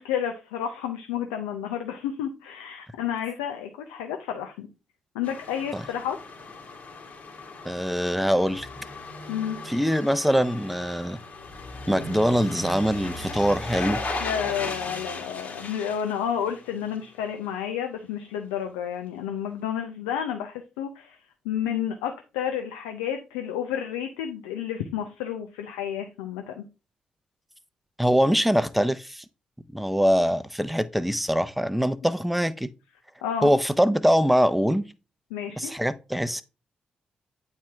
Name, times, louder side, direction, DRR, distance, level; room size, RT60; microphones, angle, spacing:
voice 1, 0.0-4.7 5.1-6.2 9.3-9.6 14.2-21.2 21.4-26.6 33.2-33.5 35.3-35.7, left 9 dB, 90° left, 0.6 m, -31 dB
sound 1, 5.2-17.1 17.4-17.5, left 2 dB, 55° left, 2.4 m, -37 dB
voice 2, 7.6-8.7 9.7-11.2 11.9-14.0 28.0-29.2 29.7-32.7 33.4-34.8 35.6-36.4, equal, ahead, 0.7 m, -23 dB
8.6 x 4.4 x 3.5 m
hypercardioid pair, 40°, 4 cm